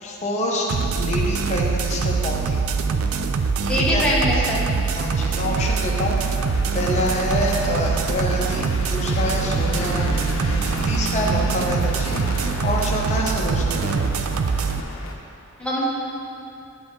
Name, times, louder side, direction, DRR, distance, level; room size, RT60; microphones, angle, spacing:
voice 1, 0.0-2.6 3.7-4.1 5.0-6.2 6.7-14.1, left 1 dB, 30° left, -1 dB, 0.7 m, -27 dB
sound 1, 0.7-14.8, right 5 dB, 80° right, 0.4 m, -23 dB
voice 2, 3.6-4.6 9.7-10.0 15.6-15.9, left 1 dB, 5° left, -6 dB, 1.0 m, -23 dB
sound 2, 5.6-15.1, left 1 dB, 75° left, 0.7 m, -32 dB
8.4 x 5.0 x 3.7 m, 2.8 s
head